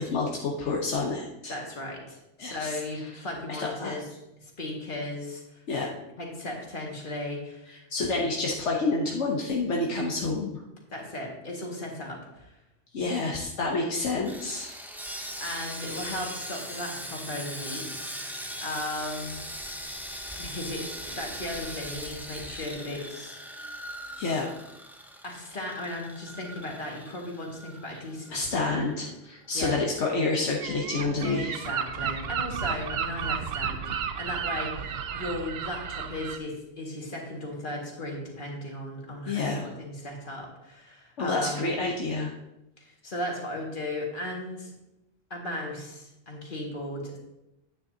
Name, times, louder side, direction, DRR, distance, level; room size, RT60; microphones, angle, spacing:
voice 1, 0.0-1.5 2.4-2.8 3.6-3.9 5.7-5.9 7.7-10.6 12.9-14.7 24.2-24.5 27.9-28.0 28.3-31.6 39.3-39.7 41.2-42.3, left 3 dB, 80° left, -1 dB, 1.3 m, -29 dB
voice 2, 1.5-4.1 4.4-5.6 6.2-7.8 10.9-12.5 15.4-18.1 18.6-19.3 20.4-23.4 25.2-29.0 29.5-29.8 31.2-41.6 42.8-44.7 45.3-47.2, left 1 dB, 45° left, -2 dB, 2.2 m, -36 dB
Sawing, 14.2-28.5 28.8-28.9 29.4-29.5, equal, ahead, 0.5 m, -40 dB
Gull seagull, 30.6-36.4, right 7 dB, 65° right, 0.8 m, -33 dB
10.5 x 9.3 x 2.8 m, 0.91 s
omnidirectional pair, 1.2 m